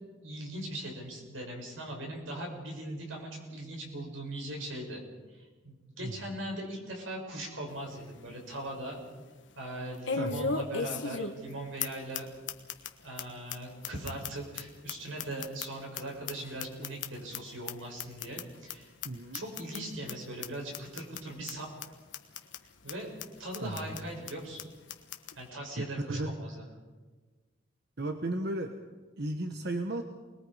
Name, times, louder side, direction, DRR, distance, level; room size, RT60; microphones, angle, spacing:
voice 1, 0.2-5.0 5.3-9.0 9.5-12.3 13.0-18.9 19.3-21.9 22.8-23.1 23.4-24.6 25.3-26.6, right 1 dB, 85° right, 0 dB, 6.5 m, -40 dB
sound 1, 7.7-7.8 8.3-8.4 10.0-11.5 11.8-11.9 12.1-12.2 12.5-12.9 13.2-13.3 13.5-13.6 13.8-16.0 16.3-17.4 17.7-17.8 18.0-18.4 18.7-18.8 19.0-19.1 19.3-19.8 20.1-20.2 20.4-20.5 20.7-21.2 21.5-21.6 21.8-21.9 22.1-22.6 22.9-23.0 23.2-23.3 23.5-24.0 24.3-24.4 24.6-24.7 24.9-25.3, left 5 dB, 70° left, 1.4 m, -35 dB
voice 2, 19.0-19.4 23.6-23.7 25.8-26.4 28.0-28.7 29.2-30.0, right 1 dB, 55° right, 5 dB, 1.2 m, -34 dB
29.0 x 21.5 x 5.0 m, 1.3 s
head